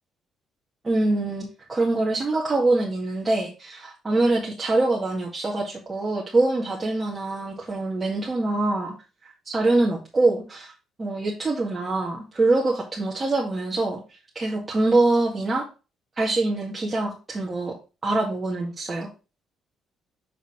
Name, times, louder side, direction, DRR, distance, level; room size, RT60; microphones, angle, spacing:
voice 1, 0.8-8.9 9.5-10.7 11.0-14.0 14.4-15.7 16.2-17.7 18.0-19.1, right 2 dB, 30° right, -4 dB, 2.0 m, -24 dB
6.5 x 3.9 x 5.0 m, 0.31 s
hypercardioid pair, 50°, 0 cm